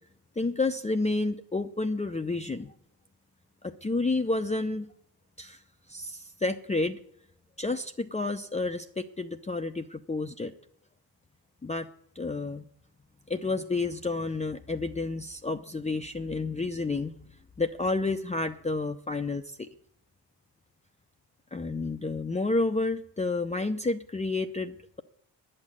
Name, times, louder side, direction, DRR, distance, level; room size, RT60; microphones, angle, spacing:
voice 1, 0.4-2.7 3.6-4.9 5.4-5.6 5.9-7.0 7.6-10.5 11.6-11.9 12.2-12.6 13.3-19.7 21.5-25.0, left 3 dB, 15° left, 6 dB, 0.7 m, -30 dB
10.5 x 6.5 x 8.7 m, 0.66 s
hypercardioid pair, 50°, 48 cm